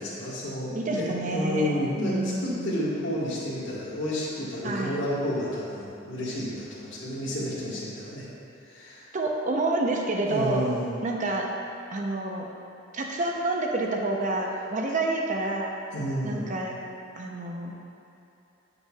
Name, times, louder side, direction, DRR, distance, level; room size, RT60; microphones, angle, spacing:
voice 1, 0.0-8.3 8.7-9.0 10.3-10.9 15.9-16.5, equal, 65° left, -10 dB, 1.7 m, -30 dB
voice 2, 0.7-1.7 2.1-2.9 4.6-5.0 9.1-10.6 11.0-11.5 11.9-12.5 12.9-15.7 16.2-16.7 17.2-17.7, right 2 dB, 40° right, 0 dB, 0.7 m, -28 dB
9.6 x 6.9 x 2.3 m, 2.8 s
head